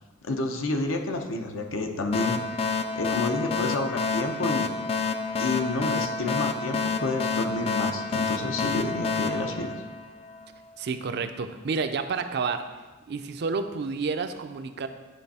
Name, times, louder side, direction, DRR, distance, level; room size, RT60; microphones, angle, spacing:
voice 1, 0.2-2.4 2.9-4.8 5.4-9.7, left 2 dB, 80° left, 4 dB, 0.8 m, -29 dB
sound 1, 2.1-10.5, left 4 dB, 30° left, 0.3 m, -29 dB
voice 2, 10.8-12.6 13.1-14.9, right 4 dB, 55° right, 8 dB, 0.5 m, -30 dB
10.0 x 3.5 x 4.1 m, 1.2 s
head